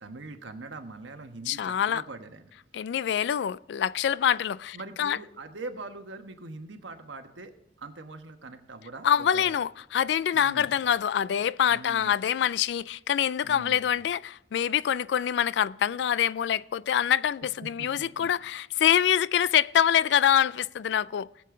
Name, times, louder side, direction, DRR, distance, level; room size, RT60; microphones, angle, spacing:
voice 1, 0.0-2.5 4.7-7.5 7.8-9.6 10.3-10.7 11.7-12.2 13.4-13.9 17.8-18.3, right 3 dB, 85° right, 1.2 m, -42 dB
voice 2, 1.5-2.0 2.7-5.2 9.0-21.3, left 9 dB, 65° left, 0.3 m, -25 dB
19.0 x 7.6 x 3.7 m
head